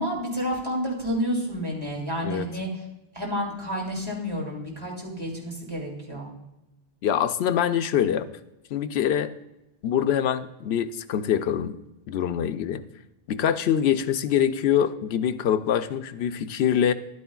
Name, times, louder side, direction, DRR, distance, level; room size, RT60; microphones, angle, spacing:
voice 1, 0.0-2.7 3.1-6.3, equal, 25° right, -3 dB, 2.4 m, -30 dB
voice 2, 7.0-8.3 8.7-9.3 9.8-11.8 12.1-12.8 13.3-16.9, left 9 dB, 85° left, 10 dB, 0.8 m, -24 dB
11.5 x 9.5 x 2.3 m, 0.93 s
omnidirectional pair, 1.0 m